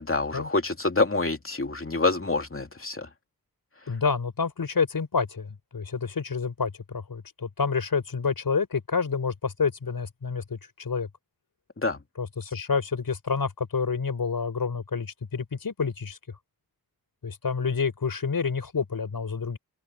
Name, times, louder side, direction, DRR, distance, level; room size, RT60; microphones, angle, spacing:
voice 1, 0.0-3.1 11.8-12.0, left 3 dB, 35° left, 3.1 m, -26 dB
voice 2, 3.9-11.1 12.2-16.2 17.2-19.6, left 5 dB, 65° left, 5.3 m, -28 dB
wide cardioid pair, 80°, 38 cm